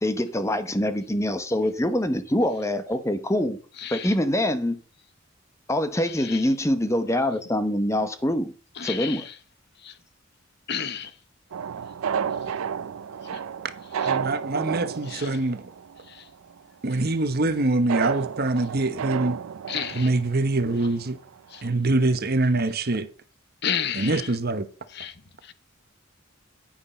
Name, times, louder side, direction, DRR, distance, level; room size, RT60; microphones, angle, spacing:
voice 1, 0.0-3.6 3.9-4.8 5.7-8.5 8.8-9.3, left 1 dB, 15° left, 0.9 m, -24 dB
voice 2, 3.8-4.1 6.1-6.5 8.8-9.4 9.8-10.0 10.7-11.1 12.3-12.6 13.2-13.4 14.0-14.1 15.1-15.4 16.1-16.3 19.7-20.1 21.5-21.7 23.6-24.3 24.9-25.5, left 8 dB, 50° left, 0.8 m, -33 dB
sound 1, 11.5-16.2 16.5-16.6 17.9-20.8 21.3-21.4 21.6-21.7, right 7 dB, 80° right, 0.4 m, -31 dB
voice 3, 14.1-15.7 16.8-19.4 19.9-21.2 21.6-23.1 23.9-24.7, right 2 dB, 45° right, 1.0 m, -24 dB
9.5 x 9.1 x 4.3 m
head